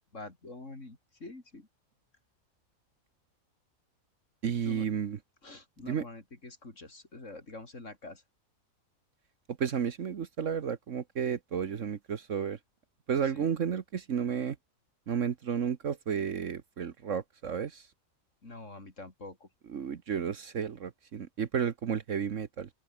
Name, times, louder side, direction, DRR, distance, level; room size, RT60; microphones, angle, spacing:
voice 1, 0.1-1.7 4.6-4.9 5.4-8.2 13.2-13.5 18.4-19.5, left 2 dB, 60° left, 4.6 m, -46 dB
voice 2, 4.4-5.2 5.9-6.0 9.6-12.6 13.1-14.6 15.1-17.8 19.7-22.7, right 7 dB, 60° right, 1.4 m, -32 dB
open air
omnidirectional pair, 1.5 m